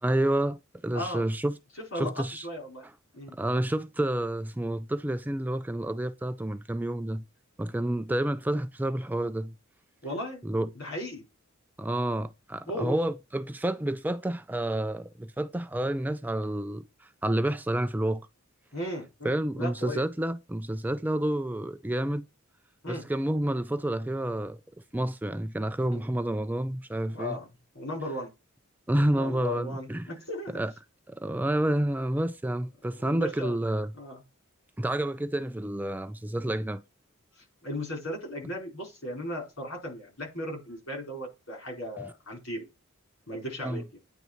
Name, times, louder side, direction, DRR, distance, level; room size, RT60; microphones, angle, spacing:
voice 1, 0.0-1.6 2.0-2.4 3.3-7.2 7.6-9.5 10.4-10.7 11.8-18.3 19.2-22.3 22.9-24.6 24.9-27.4 28.9-30.1 30.5-30.7 31.1-33.9 34.8-36.8 42.0-42.1 43.6-43.8, right 1 dB, 10° right, 0.3 m, -29 dB
voice 2, 0.9-1.2 1.9-2.8 3.1-3.3 10.0-10.4 10.7-11.2 12.7-13.0 18.7-20.0 22.8-23.0 25.9-26.0 27.1-27.5 27.7-28.3 29.1-30.6 33.0-33.5 33.9-34.2 37.6-42.6 43.3-44.0, equal, 70° left, 4.7 m, -36 dB
9.2 x 3.3 x 4.4 m
head